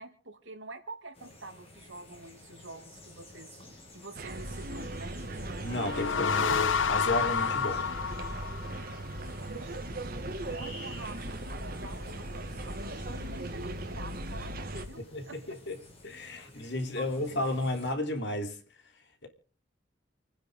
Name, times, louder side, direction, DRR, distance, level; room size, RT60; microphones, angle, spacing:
voice 1, 0.0-3.5 3.9-5.2 9.1-10.0 10.5-15.6 16.3-16.5 17.0-17.4, right 2 dB, 80° right, 2.8 m, -47 dB
sound 1, 1.1-17.9, left 1 dB, 30° left, 7.4 m, -52 dB
sound 2, 4.1-14.9, right 1 dB, 50° right, 2.1 m, -38 dB
sound 3, 5.6-9.1, left 6 dB, 80° left, 0.7 m, -30 dB
voice 2, 5.6-7.9 15.1-15.7 16.0-18.6, left 1 dB, 65° left, 3.4 m, -32 dB
29.0 x 10.0 x 3.8 m
head